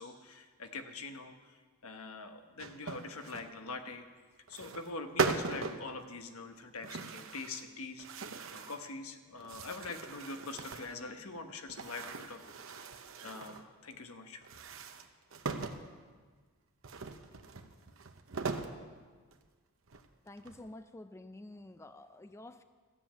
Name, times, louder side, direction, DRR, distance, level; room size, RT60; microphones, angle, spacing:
voice 1, 0.0-1.6 1.8-4.0 4.5-8.2 8.5-12.4 12.8-12.9 13.2-14.4, left 3 dB, 85° left, 6 dB, 1.2 m, -44 dB
sound 1, 2.6-3.5 4.5-4.9 5.2-5.9 6.8-7.7 8.0-8.9 9.4-11.0 11.7-13.6 14.4-15.8 16.8-18.8 19.3-19.4 19.9-20.7, right 4 dB, 65° right, 0.8 m, -39 dB
voice 2, 20.3-22.6, left 1 dB, 15° left, 10 dB, 0.3 m, -49 dB
13.5 x 7.5 x 9.1 m, 1.5 s
head